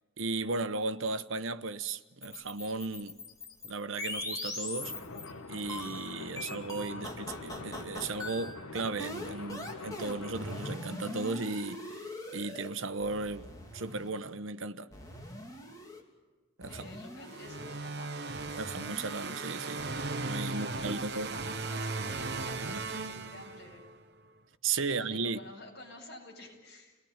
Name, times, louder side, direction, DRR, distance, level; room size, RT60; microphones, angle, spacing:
voice 1, 0.2-3.2 3.6-4.9 5.5-14.9 16.6-16.9 18.5-19.9 20.1-21.3 24.6-25.4, right 3 dB, 70° right, 1.0 m, -35 dB
sound 1, 2.2-5.3 5.7-12.7 13.0-14.1 14.9-16.0 16.6-17.7 18.5-19.6, left 1 dB, 15° left, 3.1 m, -42 dB
sound 2, 4.8-10.8, left 3 dB, 90° left, 1.4 m, -44 dB
voice 2, 16.7-18.1 20.5-23.9 24.8-27.0, left 1 dB, 50° left, 7.8 m, -49 dB
sound 3, 17.3-23.9, right 3 dB, 50° right, 1.1 m, -37 dB
29.5 x 19.0 x 8.9 m
head